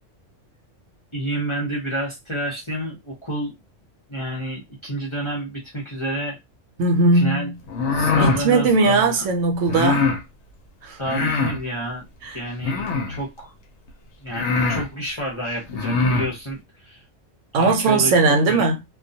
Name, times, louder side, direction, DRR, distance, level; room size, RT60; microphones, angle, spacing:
voice 1, 1.1-3.6 4.1-6.4 7.1-7.5 7.9-9.3 11.0-12.1 12.3-13.5 14.2-17.0 17.6-18.2 18.5-18.7, right 1 dB, 30° left, 0.5 m, -29 dB
voice 2, 6.8-7.5 8.2-10.1 10.8-11.0 17.5-18.7, right 3 dB, 70° right, 0.9 m, -18 dB
sound 1, 7.7-8.4 9.7-10.2 11.0-11.6 12.6-13.2 13.9-14.0 14.3-14.9 15.7-16.3, left 4 dB, 70° left, 0.8 m, -22 dB
2.2 x 2.2 x 2.6 m
omnidirectional pair, 1.3 m